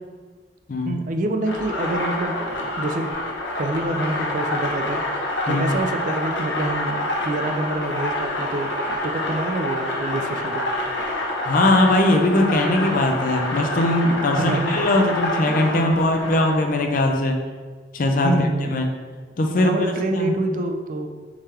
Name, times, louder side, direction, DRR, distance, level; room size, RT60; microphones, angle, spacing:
voice 1, 0.8-3.1 3.6-10.7 14.4-15.2 15.5-15.6 18.2-18.8 19.6-21.1, right 2 dB, 45° right, 6 dB, 0.4 m, -27 dB
sound 1, 1.4-16.6, left 1 dB, 80° left, 0.9 m, -27 dB
voice 2, 11.4-17.4 17.9-18.9 19.4-20.3, left 1 dB, 50° left, 4 dB, 0.5 m, -20 dB
3.7 x 3.3 x 4.3 m, 1.5 s
head